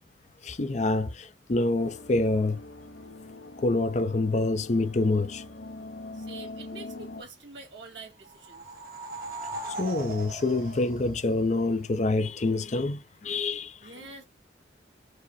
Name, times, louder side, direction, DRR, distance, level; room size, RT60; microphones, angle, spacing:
voice 1, 0.4-2.6 3.6-5.4 9.8-13.8, left 2 dB, 40° left, 0.5 m, -26 dB
sound 1, 1.8-7.2, left 2 dB, 70° left, 0.7 m, -42 dB
voice 2, 6.1-8.7 13.8-14.2, right 3 dB, 90° right, 1.9 m, -46 dB
sound 2, 8.3-11.8, right 2 dB, 50° right, 1.2 m, -39 dB
4.8 x 2.1 x 4.2 m
head